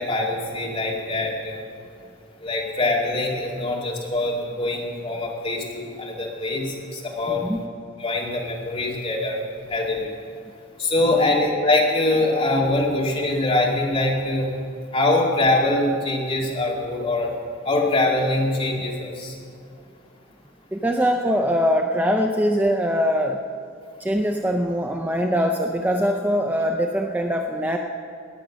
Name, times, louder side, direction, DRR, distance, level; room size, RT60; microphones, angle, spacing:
voice 1, 0.0-1.6 2.4-7.4 8.0-9.4 9.7-10.1 10.8-14.5 14.9-17.3 17.6-19.3, left 2 dB, 30° left, -3 dB, 2.5 m, -23 dB
voice 2, 7.3-7.6 11.1-11.3 20.7-23.4 24.0-27.8, equal, 10° right, 3 dB, 0.5 m, -22 dB
18.5 x 9.2 x 6.3 m, 2.4 s
head